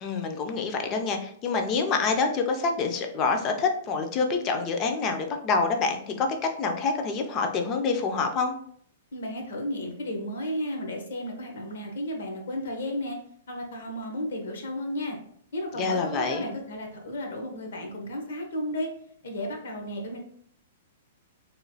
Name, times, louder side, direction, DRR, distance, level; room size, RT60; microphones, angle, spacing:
voice 1, 0.0-6.3 6.6-8.5 15.8-16.5, left 4 dB, 20° left, 4 dB, 0.3 m, -27 dB
voice 2, 9.1-13.2 13.5-15.2 15.5-18.9 19.2-20.2, left 1 dB, 70° left, 2 dB, 0.8 m, -33 dB
2.9 x 2.2 x 2.7 m, 0.63 s
hypercardioid pair, 170°, 0 cm